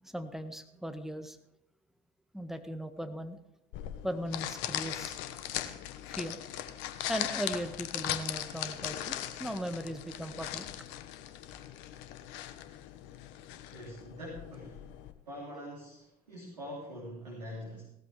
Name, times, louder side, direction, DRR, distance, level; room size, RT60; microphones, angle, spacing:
voice 1, 0.0-1.4 2.3-3.4 4.0-5.2 6.1-6.4 7.1-10.7, equal, ahead, 8 dB, 1.6 m, -38 dB
sound 1, 3.7-15.1, left 12 dB, 65° left, 1.2 m, -39 dB
voice 2, 13.7-14.8 15.3-17.8, equal, 90° right, -4 dB, 3.4 m, -44 dB
17.0 x 14.0 x 3.5 m, 0.86 s
hypercardioid pair, 60°, 20 cm